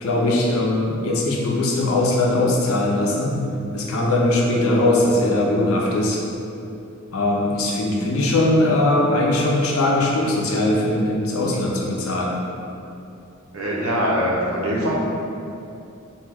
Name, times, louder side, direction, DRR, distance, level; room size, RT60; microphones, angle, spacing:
voice 1, 0.0-3.4 3.7-6.2 7.1-12.3, left 1 dB, 80° left, -2 dB, 0.5 m, -20 dB
voice 2, 13.5-14.9, equal, 85° right, -4 dB, 0.6 m, -22 dB
2.7 x 2.2 x 3.3 m, 2.7 s
head